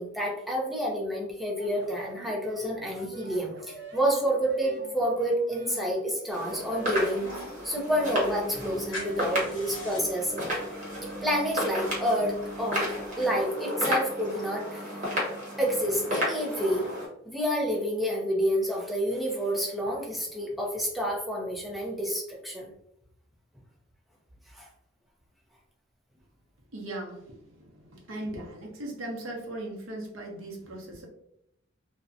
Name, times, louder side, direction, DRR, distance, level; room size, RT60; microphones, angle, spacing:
voice 1, 0.0-7.3 7.6-10.4 11.2-15.1 15.6-16.8 17.3-22.7 24.5-24.7, equal, ahead, -3 dB, 0.5 m, -29 dB
sound 1, 1.6-12.1, right 2 dB, 60° right, 0.4 m, -45 dB
sound 2, 6.3-17.1, equal, 40° right, 0.9 m, -33 dB
sound 3, 6.5-13.4, left 1 dB, 75° left, 0.9 m, -47 dB
voice 2, 26.7-31.1, right 1 dB, 90° right, 0 dB, 0.7 m, -38 dB
2.6 x 2.1 x 2.4 m, 0.77 s
head